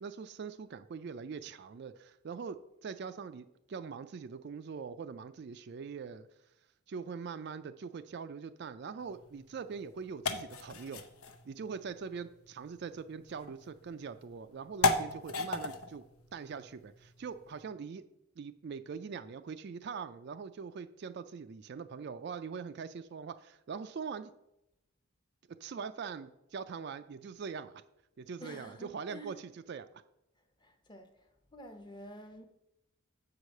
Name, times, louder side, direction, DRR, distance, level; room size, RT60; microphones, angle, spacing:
voice 1, 0.0-6.3 6.9-11.1 11.4-16.0 16.3-18.0 18.4-24.3 25.6-27.8 28.2-29.9, right 5 dB, 50° right, 0.3 m, -42 dB
sound 1, 9.0-17.6, left 3 dB, 85° left, 0.7 m, -37 dB
voice 2, 28.4-29.4 30.6-31.1 31.5-32.5, equal, 20° left, 0.7 m, -49 dB
7.6 x 4.8 x 6.4 m
head